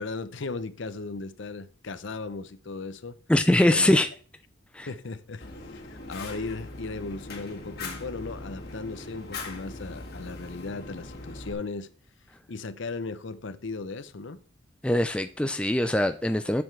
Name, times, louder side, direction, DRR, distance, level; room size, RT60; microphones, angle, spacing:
voice 1, 0.0-3.2 3.7-4.0 4.9-11.9 12.5-14.4, left 3 dB, 65° left, 0.6 m, -36 dB
voice 2, 3.3-4.1 4.7-4.9 14.8-16.6, left 1 dB, 5° left, 0.3 m, -22 dB
Fire, 5.4-11.5, left 2 dB, 50° left, 1.8 m, -40 dB
11.0 x 7.0 x 3.3 m
head